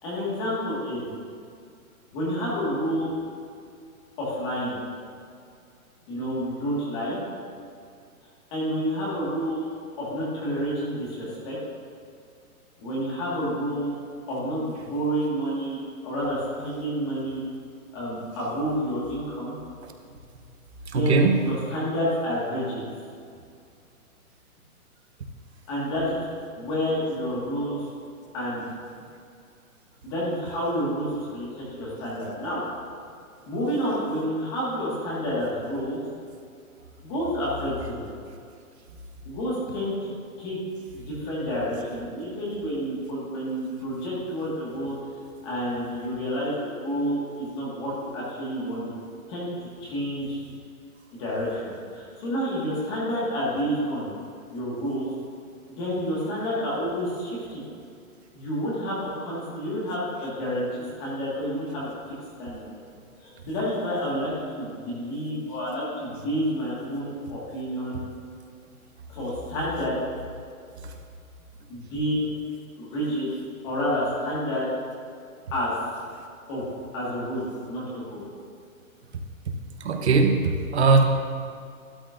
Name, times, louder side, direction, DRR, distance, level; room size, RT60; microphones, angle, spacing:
voice 1, 0.0-1.1 2.1-3.1 4.2-4.8 6.1-7.2 8.5-9.7 10.0-11.6 12.8-13.9 14.3-15.8 16.0-17.4 17.9-19.6 20.9-22.8 25.7-26.3 26.6-27.8 28.3-28.7 30.0-32.6 33.5-36.0 37.0-38.1 39.3-40.1 40.4-40.6 40.9-45.0 45.4-48.9 49.3-50.4 51.1-54.1 54.5-55.1 55.7-57.6 58.3-62.7 63.2-68.0 69.1-70.0 71.7-72.3 72.8-73.3 73.6-74.7 75.5-75.7 76.5-76.7 76.9-78.2, equal, 15° left, -7 dB, 1.7 m, -29 dB
voice 2, 20.9-21.4 79.8-81.0, right 4 dB, 50° right, 4 dB, 1.0 m, -19 dB
12.5 x 11.0 x 2.6 m, 2.3 s
hypercardioid pair, 180°, 44 cm